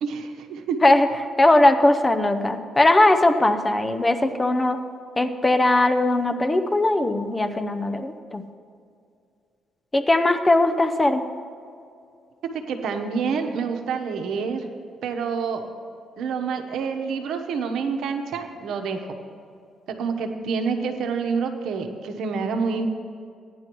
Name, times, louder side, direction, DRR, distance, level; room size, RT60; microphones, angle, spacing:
voice 1, 0.0-0.8 12.5-14.6 15.0-15.6 16.2-19.0 19.9-22.9, right 5 dB, 75° right, 5 dB, 1.0 m, -27 dB
voice 2, 1.4-4.8 5.2-8.4 9.9-11.2, left 2 dB, 20° left, 8 dB, 0.7 m, -19 dB
16.5 x 10.0 x 3.0 m, 2.4 s
cardioid pair, 90°, 0 cm